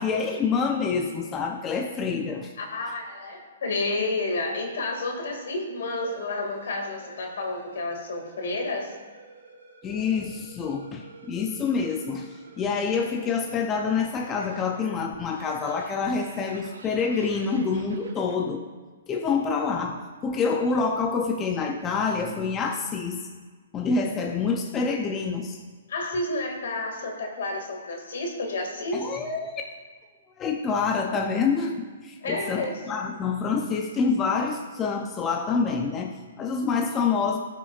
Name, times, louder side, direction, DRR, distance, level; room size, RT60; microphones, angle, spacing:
voice 1, 0.0-2.5 9.8-18.6 19.1-23.3 23.7-25.6 28.9-29.5 30.4-37.4, left 5 dB, 20° left, 3 dB, 0.6 m, -27 dB
voice 2, 2.6-8.9 25.9-29.0 32.2-32.8, left 2 dB, 70° left, 2 dB, 2.2 m, -30 dB
sound 1, 6.0-18.4, right 3 dB, 90° right, 1.7 m, -48 dB
18.0 x 6.0 x 2.5 m, 1.4 s
hypercardioid pair, 145°, 0 cm